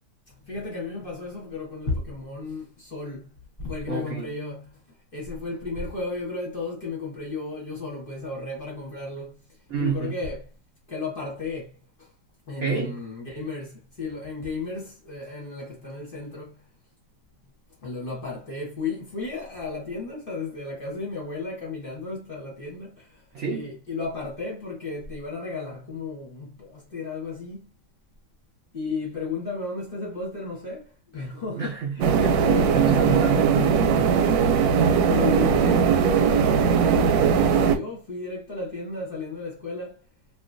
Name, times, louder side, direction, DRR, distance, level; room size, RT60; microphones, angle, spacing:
voice 1, 0.3-3.3 3.6-4.8 5.1-9.4 9.8-10.5 10.9-12.1 12.5-16.6 17.8-27.7 28.7-32.1 32.4-32.8 34.8-40.0, left 3 dB, 35° left, 1.1 m, -34 dB
voice 2, 3.9-4.3 9.7-10.1 12.6-13.0 23.3-23.6 31.5-34.2, right 6 dB, 65° right, 0.7 m, -28 dB
sound 1, 32.0-37.8, right 6 dB, 90° right, 1.3 m, -20 dB
3.1 x 2.7 x 2.5 m
omnidirectional pair, 2.0 m